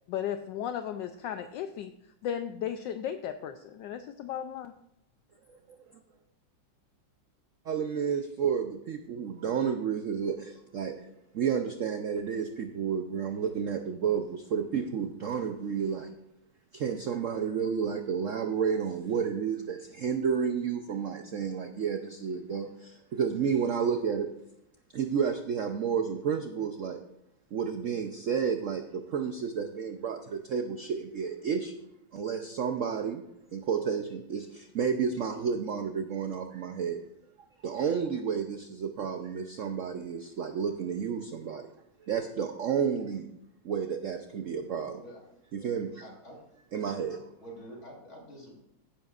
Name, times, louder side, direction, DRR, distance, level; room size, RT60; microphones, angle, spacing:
voice 1, 0.1-1.9 2.2-4.7, left 9 dB, 75° left, 8 dB, 1.2 m, -35 dB
voice 2, 7.7-10.9 11.3-16.1 16.7-24.3 24.9-27.0 27.5-31.9 32.1-33.2 33.5-37.0 37.6-41.7 42.0-43.3 43.6-45.0 45.5-46.1 46.7-47.3, right 7 dB, 70° right, 6 dB, 0.7 m, -31 dB
voice 3, 46.0-46.3 47.4-48.5, right 1 dB, 35° left, -2 dB, 3.7 m, -47 dB
15.5 x 11.0 x 2.5 m, 0.81 s
omnidirectional pair, 2.1 m